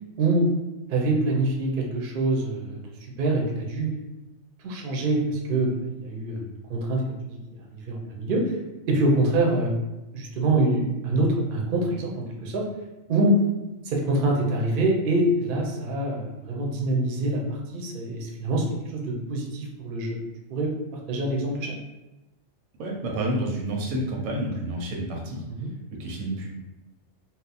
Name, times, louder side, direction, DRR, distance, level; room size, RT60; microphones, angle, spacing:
voice 1, 0.2-0.5 0.9-2.8 3.2-3.9 4.6-7.0 7.7-8.6 8.9-9.7 10.1-12.1 12.4-12.6 13.1-13.3 13.8-18.6 18.9-20.2 20.5-20.7 21.1-21.7 25.6-25.7, right 2 dB, 55° right, -1 dB, 0.6 m, -25 dB
voice 2, 22.8-25.4 26.0-26.5, right 1 dB, 90° right, -1 dB, 1.2 m, -29 dB
2.7 x 2.0 x 4.0 m, 1.0 s
omnidirectional pair, 1.4 m